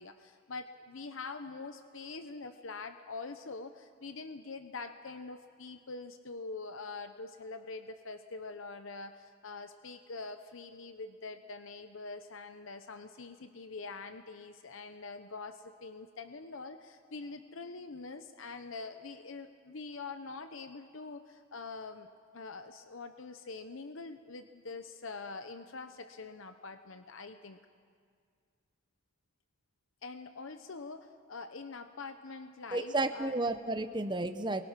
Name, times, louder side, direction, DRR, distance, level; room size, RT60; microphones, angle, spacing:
voice 1, 0.0-27.6 30.0-33.4, left 3 dB, 70° left, 9 dB, 0.8 m, -44 dB
voice 2, 32.7-34.6, right 2 dB, 20° right, 9 dB, 0.8 m, -32 dB
28.0 x 23.0 x 5.9 m, 2.1 s
head